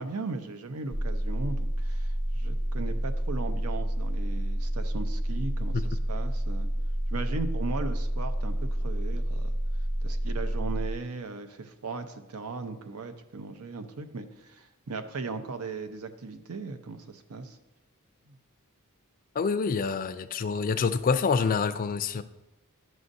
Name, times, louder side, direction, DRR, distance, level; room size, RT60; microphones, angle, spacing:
voice 1, 0.0-6.7 7.1-9.5 10.0-17.6 18.3-18.4, right 4 dB, 85° right, 0.7 m, -37 dB
sound 1, 0.9-10.9, right 1 dB, 30° right, 0.5 m, -29 dB
voice 2, 19.3-22.2, left 5 dB, 40° left, 0.4 m, -27 dB
11.0 x 6.2 x 2.6 m
head